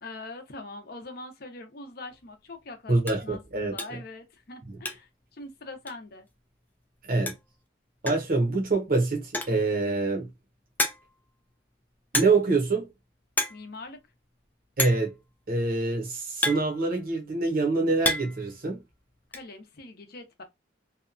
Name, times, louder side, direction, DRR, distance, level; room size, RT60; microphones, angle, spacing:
voice 1, 0.0-6.3 13.5-14.0 19.3-20.4, left 2 dB, 55° left, 0.6 m, -43 dB
sound 1, 2.1-2.2 2.6-2.7 3.0-3.3 3.8-4.1 4.4-5.2 5.5-5.6 5.9-6.0 7.0-7.1 7.3-7.6 8.1-8.4 9.2-9.7 10.2-10.3 10.8-11.3 12.1-12.6 12.8-13.0 13.3-13.6 13.9-14.0 14.8-15.1 15.9-17.2 17.7-18.4 18.7-19.4, left 2 dB, 10° left, 0.3 m, -30 dB
voice 2, 2.9-3.7 7.1-7.3 8.0-10.3 12.1-12.9 14.8-15.1 15.5-18.8, right 3 dB, 50° right, 0.7 m, -25 dB
2.8 x 2.2 x 2.4 m
head